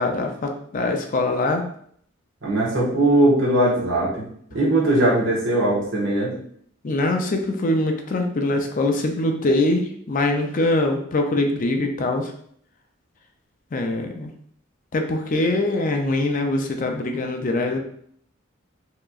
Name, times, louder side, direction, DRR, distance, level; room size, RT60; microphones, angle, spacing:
voice 1, 0.0-1.6 6.8-12.3 13.7-14.3 14.9-17.8, left 2 dB, 40° left, 4 dB, 0.4 m, -23 dB
voice 2, 2.4-4.3 4.5-6.3, right 1 dB, 65° right, -6 dB, 1.5 m, -20 dB
4.6 x 2.9 x 2.4 m, 0.63 s
head